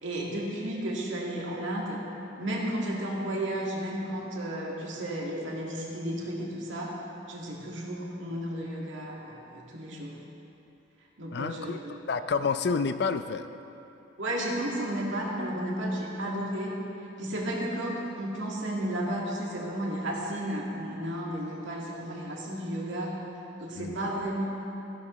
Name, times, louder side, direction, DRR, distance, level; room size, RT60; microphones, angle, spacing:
voice 1, 0.0-2.0 2.4-7.0 7.3-10.2 11.2-12.0 14.2-16.8 17.2-23.2 23.6-24.4, right 1 dB, 90° right, -3 dB, 1.9 m, -33 dB
voice 2, 11.3-11.8 12.1-13.5 23.8-24.0, left 5 dB, 60° left, 11 dB, 0.4 m, -29 dB
14.5 x 11.5 x 3.1 m, 2.9 s
head